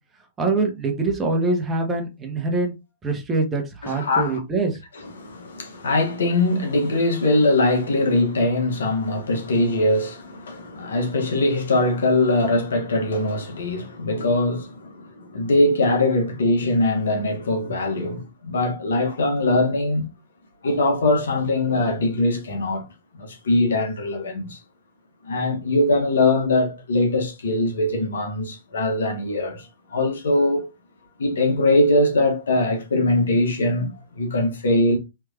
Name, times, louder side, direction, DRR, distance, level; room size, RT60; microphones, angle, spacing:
voice 1, 0.4-2.7 3.0-4.8, right 3 dB, 20° right, 1.1 m, -24 dB
voice 2, 3.8-4.4 5.0-20.1 20.6-22.9 23.1-24.6 25.2-30.7 31.2-35.0, left 2 dB, 75° left, 1.1 m, -22 dB
3.5 x 3.1 x 2.4 m
hypercardioid pair, 110°, 0 cm